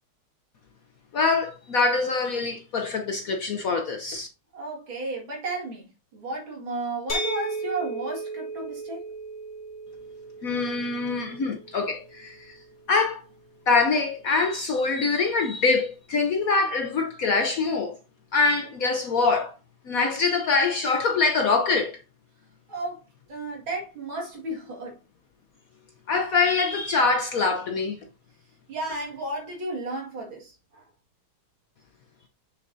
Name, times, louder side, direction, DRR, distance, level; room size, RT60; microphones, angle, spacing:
voice 1, 1.1-4.3 10.4-12.6 12.9-13.2 13.7-18.0 18.3-19.5 19.9-22.0 26.1-28.0, left 4 dB, 75° left, 0.8 m, -24 dB
voice 2, 4.5-5.9 6.1-9.0 22.7-23.0 23.3-25.0 28.7-30.8, right 2 dB, 65° right, 2.8 m, -33 dB
sound 1, 7.1-12.9, right 2 dB, 60° left, 2.2 m, -35 dB
6.6 x 6.3 x 2.6 m
omnidirectional pair, 2.4 m